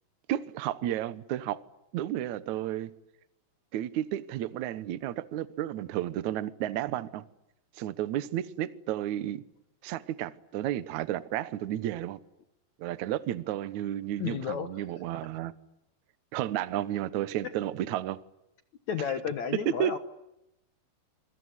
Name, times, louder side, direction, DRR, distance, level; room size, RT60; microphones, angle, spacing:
voice 1, 0.3-1.6 1.9-2.9 3.7-7.2 7.8-9.4 9.8-12.2 12.8-15.5 16.3-18.2 19.7-20.0, right 12 dB, 80° right, 1.7 m, -32 dB
voice 2, 14.2-14.8 15.1-15.3 17.4-17.5 18.9-20.0, left 8 dB, 65° left, 1.8 m, -32 dB
27.5 x 22.5 x 9.7 m
omnidirectional pair, 5.0 m